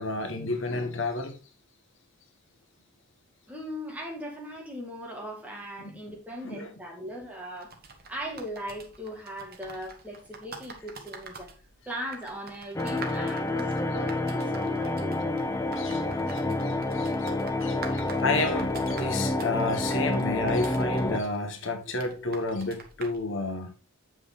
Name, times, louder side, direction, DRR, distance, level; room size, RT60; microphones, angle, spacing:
voice 1, 0.0-1.4 5.8-6.0 6.4-6.7 15.7-17.3 17.6-23.8, left 3 dB, 65° left, 1.2 m, -31 dB
voice 2, 3.5-7.7 8.1-11.5 11.9-15.3, equal, 5° right, 1.9 m, -39 dB
sound 1, 7.6-23.2, right 4 dB, 45° right, 1.4 m, -46 dB
sound 2, 12.8-21.2, left 2 dB, 15° left, 0.5 m, -28 dB
7.8 x 5.9 x 3.6 m
head